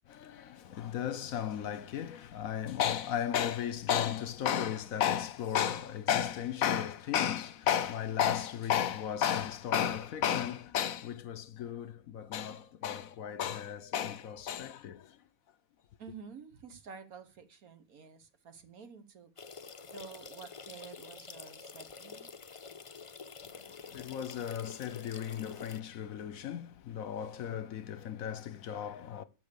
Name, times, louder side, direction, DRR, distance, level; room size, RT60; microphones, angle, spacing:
voice 1, 0.1-15.2 23.8-29.2, left 9 dB, 75° left, 1.2 m, -34 dB
voice 2, 16.0-19.5 19.8-22.3, right 6 dB, 80° right, 1.6 m, -50 dB
sound 1, 19.4-25.8, left 5 dB, 50° left, 0.4 m, -48 dB
12.0 x 7.1 x 6.9 m
omnidirectional pair, 1.5 m